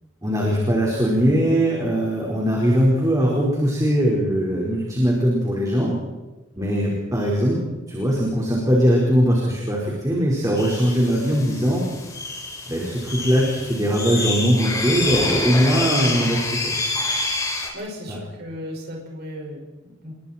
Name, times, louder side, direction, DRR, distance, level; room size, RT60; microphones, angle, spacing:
voice 1, 0.2-6.0 6.6-7.6 7.9-11.9 12.7-16.8 18.1-18.2, equal, 15° right, -3 dB, 4.7 m, -20 dB
sound 1, 10.6-17.7, left 3 dB, 15° left, 3.7 m, -27 dB
voice 2, 17.7-20.1, equal, 50° right, -1 dB, 5.8 m, -36 dB
29.5 x 22.0 x 4.5 m, 1.1 s
head